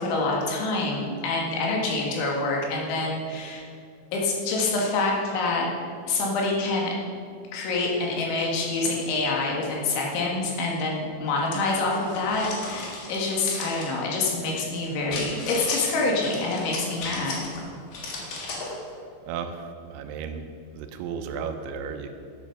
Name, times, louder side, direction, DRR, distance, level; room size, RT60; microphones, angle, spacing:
voice 1, 0.0-3.6 4.1-5.7 6.1-7.0 7.5-17.4, left 3 dB, 80° left, -2 dB, 4.3 m, -26 dB
sound 1, 12.0-13.9 15.1-15.8 16.2-17.6 17.9-18.8, left 3 dB, 55° left, 3.0 m, -35 dB
voice 2, 19.3-20.4 20.7-22.1, right 6 dB, 80° right, 6 dB, 3.1 m, -34 dB
10.0 x 9.6 x 6.5 m, 2.2 s
omnidirectional pair, 5.4 m